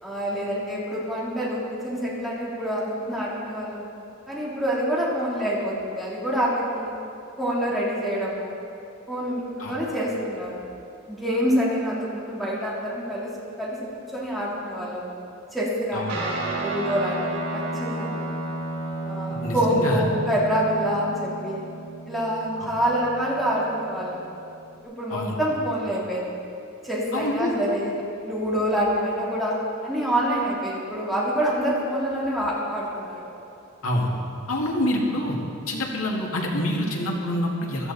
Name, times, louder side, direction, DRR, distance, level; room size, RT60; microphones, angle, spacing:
voice 1, 0.0-3.9 4.3-6.9 7.4-8.6 9.1-9.4 9.7-10.6 11.1-13.3 13.6-15.1 15.5-18.3 19.0-21.6 22.1-24.3 24.8-26.3 26.8-29.6 29.8-33.2, equal, ahead, -7 dB, 3.2 m, -26 dB
Guitar, 16.1-24.8, right 2 dB, 70° right, 3.8 m, -33 dB
voice 2, 19.3-20.0 22.6-22.7 25.1-25.4 27.1-27.5 33.8-34.1 34.5-35.4 35.7-37.9, left 1 dB, 85° left, -1 dB, 2.3 m, -26 dB
15.5 x 13.0 x 4.2 m, 2.7 s
head